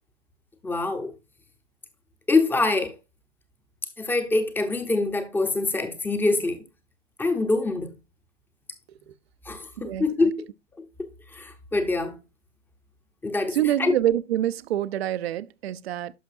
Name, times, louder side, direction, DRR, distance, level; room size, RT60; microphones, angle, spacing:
voice 1, 0.6-1.1 2.3-2.9 4.0-6.6 7.2-7.9 9.5-10.5 11.0-12.2 13.2-13.9, left 3 dB, 5° left, 0.7 m, -25 dB
voice 2, 13.5-16.1, right 12 dB, 55° right, 0.5 m, -26 dB
11.0 x 5.7 x 2.5 m
hypercardioid pair, 120°, 38 cm